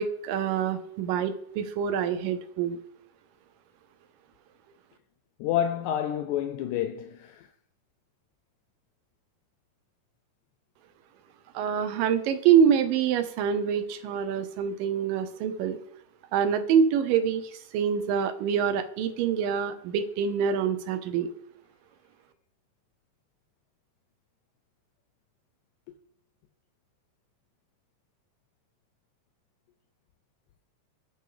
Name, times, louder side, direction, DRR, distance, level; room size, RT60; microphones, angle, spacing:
voice 1, 0.0-2.8 11.5-15.8 16.3-21.3, right 7 dB, 85° right, 2.6 m, -25 dB
voice 2, 5.4-7.5 25.9-26.0, left 10 dB, 80° left, 1.7 m, -29 dB
13.5 x 4.7 x 5.0 m
omnidirectional pair, 3.9 m